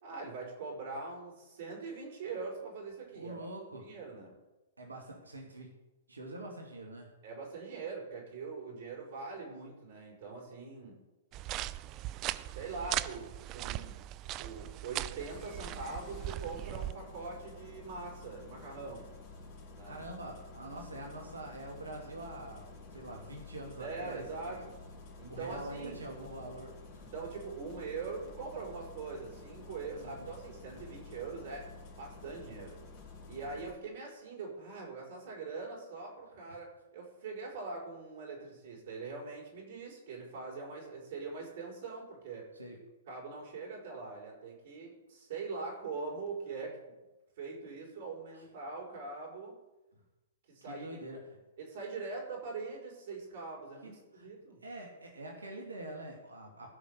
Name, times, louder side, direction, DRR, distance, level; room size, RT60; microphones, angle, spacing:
voice 1, 0.0-3.5 3.8-4.3 7.2-11.0 12.5-14.0 14.4-19.1 19.7-20.0 23.8-24.8 25.2-26.0 27.1-31.7 31.9-32.8 33.3-42.5 43.1-46.8 47.4-49.6 50.5-50.9 51.6-54.6, right 4 dB, 60° right, -2 dB, 5.3 m, -42 dB
voice 2, 3.2-3.9 4.8-5.7 6.1-7.1 19.9-24.6 25.3-27.0 29.9-30.3 42.6-42.8 50.7-51.4 53.8-54.3 54.6-56.8, right 1 dB, 90° right, 1 dB, 2.4 m, -45 dB
sound 1, 11.3-16.9, right 14 dB, 35° right, 0.4 m, -39 dB
Engine starting, 15.2-33.7, left 3 dB, 40° left, 3.5 m, -51 dB
16.0 x 5.9 x 6.7 m, 1.0 s
hypercardioid pair, 115°, 0 cm